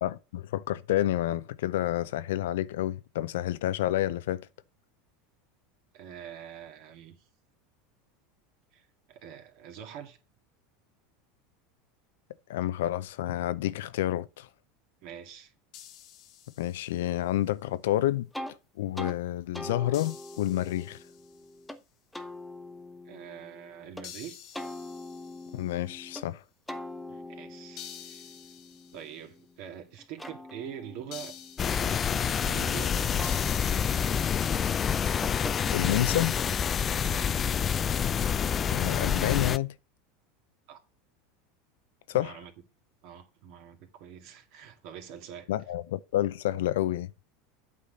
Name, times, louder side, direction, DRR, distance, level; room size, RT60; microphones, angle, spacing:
voice 1, 0.0-4.5 12.5-14.5 16.6-18.3 18.8-21.0 25.5-26.4 35.7-36.4 38.7-39.8 42.1-42.4 45.5-47.1, left 13 dB, 85° left, 0.6 m, -29 dB
voice 2, 5.9-7.2 8.7-10.2 15.0-15.5 23.0-24.4 27.1-28.3 28.9-31.4 31.7-33.5 37.0-37.3 40.7-40.8 42.1-42.5 43.0-45.5, right 9 dB, 60° right, 2.0 m, -45 dB
sound 1, 15.7-17.2 19.9-21.5 24.0-25.9 27.8-29.2 31.1-32.1 33.2-34.9, left 10 dB, 55° left, 1.3 m, -48 dB
sound 2, 18.3-18.6 18.9-19.2 19.5-21.8 22.1-24.1 24.5-26.3 26.7-29.6 30.0-32.7 33.2-36.2, left 1 dB, 5° left, 1.0 m, -43 dB
sound 3, 31.6-39.6, left 7 dB, 30° left, 0.4 m, -27 dB
8.5 x 4.1 x 6.6 m
supercardioid pair, 120°, 0 cm